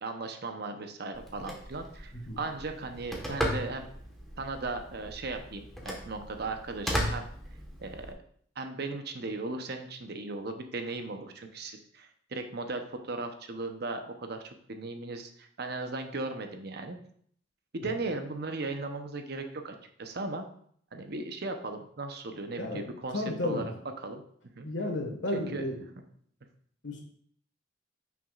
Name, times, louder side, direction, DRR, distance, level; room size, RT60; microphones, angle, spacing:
voice 1, 0.0-3.9 4.4-7.3 7.8-8.1 8.6-17.0 17.7-20.5 20.9-24.2 24.6-24.7 25.3-25.6, right 3 dB, 60° right, 6 dB, 0.8 m, -37 dB
Telephone, 1.1-8.1, equal, ahead, 1.3 m, -37 dB
voice 2, 23.1-23.7 24.6-25.8 26.8-27.0, left 2 dB, 80° left, 2 dB, 1.6 m, -33 dB
9.4 x 6.0 x 2.5 m, 0.62 s
head